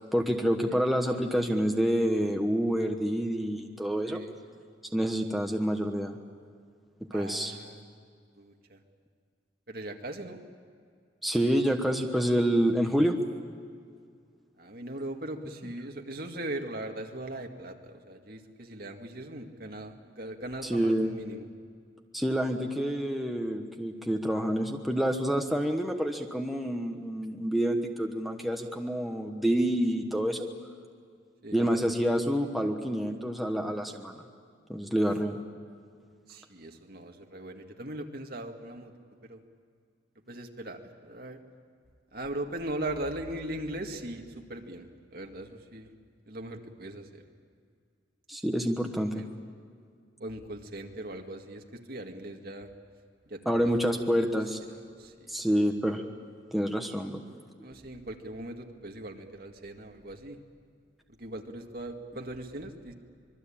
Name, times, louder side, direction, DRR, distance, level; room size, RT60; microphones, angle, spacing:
voice 1, 0.1-4.2 4.9-6.1 7.1-7.5 11.2-13.1 20.6-21.1 22.1-30.5 31.5-34.2 34.7-35.4 48.3-49.2 53.4-54.6 55.3-56.0 56.5-57.2, equal, ahead, 2 dB, 1.2 m, -28 dB
voice 2, 7.1-7.8 8.4-8.8 9.7-10.4 14.6-21.5 31.4-31.6 36.3-38.9 39.2-39.4 40.3-41.4 42.1-45.9 46.3-47.2 49.1-49.3 50.2-52.7 53.3-53.7 54.7-55.3 57.6-60.4 61.2-62.9, right 1 dB, 55° right, 3 dB, 2.0 m, -39 dB
26.0 x 22.0 x 8.8 m, 2.1 s
head